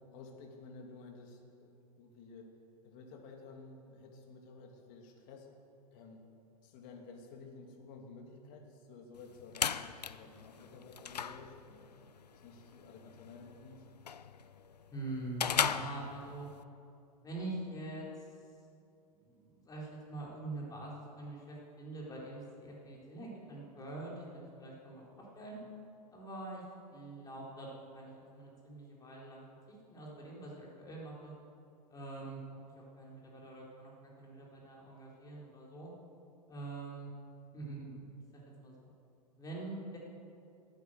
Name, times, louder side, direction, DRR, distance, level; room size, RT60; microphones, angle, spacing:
voice 1, 0.1-2.5 2.8-5.5 5.9-6.2 6.6-11.9 12.4-13.8, left 3 dB, 45° left, 2 dB, 2.5 m, -52 dB
sound 1, 9.1-16.6, left 7 dB, 85° left, 0.5 m, -38 dB
voice 2, 14.9-16.5 17.2-18.3 19.1-25.6 26.1-26.6 26.9-31.3 31.9-35.9 36.5-37.1 37.5-38.9 39.4-40.0, right 2 dB, 20° left, -4 dB, 4.1 m, -45 dB
12.5 x 9.2 x 7.9 m, 2.6 s
figure-of-eight pair, 95°, 20 cm